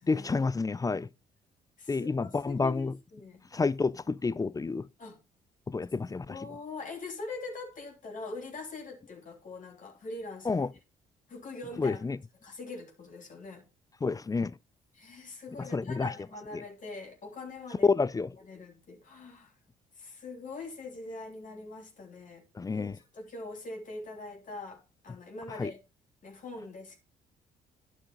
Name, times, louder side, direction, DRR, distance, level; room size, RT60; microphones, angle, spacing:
voice 1, 0.1-1.1 1.9-3.0 3.5-4.9 5.7-6.5 10.5-10.7 11.8-12.2 14.0-14.5 15.6-16.1 16.5-16.6 17.8-18.3 22.6-22.9 25.6-25.7, left 4 dB, 20° left, 0.4 m, -29 dB
voice 2, 1.8-3.4 5.0-5.2 6.2-10.6 11.3-12.0 12.4-13.6 14.9-17.9 18.4-19.5 20.0-22.4 22.7-25.8 26.2-27.0, left 3 dB, 50° left, 3.3 m, -43 dB
9.8 x 6.2 x 3.9 m
supercardioid pair, 60°, 17 cm